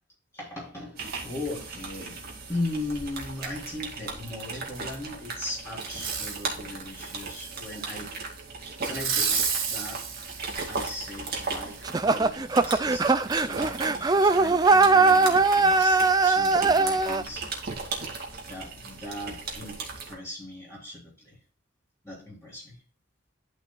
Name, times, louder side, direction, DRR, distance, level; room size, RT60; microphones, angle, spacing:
voice 1, 0.3-2.2 2.5-8.1 8.6-10.1 10.7-17.5 17.8-18.0 18.5-21.4 22.0-22.8, left 1 dB, 15° left, 3.5 m, -38 dB
sound 1, 1.0-20.1, right 4 dB, 50° right, 2.2 m, -37 dB
Fireworks, 5.8-6.5 7.0-8.0 8.8-11.2 11.8-11.9, right 6 dB, 85° right, 3.3 m, -31 dB
sound 2, 11.8-17.2, right 3 dB, 20° right, 0.4 m, -21 dB
11.5 x 5.4 x 2.3 m
head